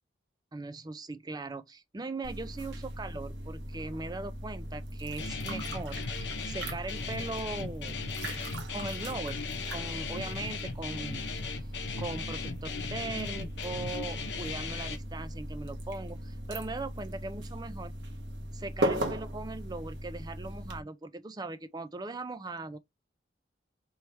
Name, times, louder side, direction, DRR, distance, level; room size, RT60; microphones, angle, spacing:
voice 1, 0.5-6.0 6.4-8.1 8.7-11.3 12.0-17.9 18.5-22.8, right 3 dB, 20° right, 0.4 m, -39 dB
sound 1, 2.2-20.8, right 1 dB, 70° right, 1.1 m, -38 dB
Guitar, 5.2-15.0, left 5 dB, 65° left, 0.8 m, -38 dB
3.4 x 3.1 x 4.3 m
head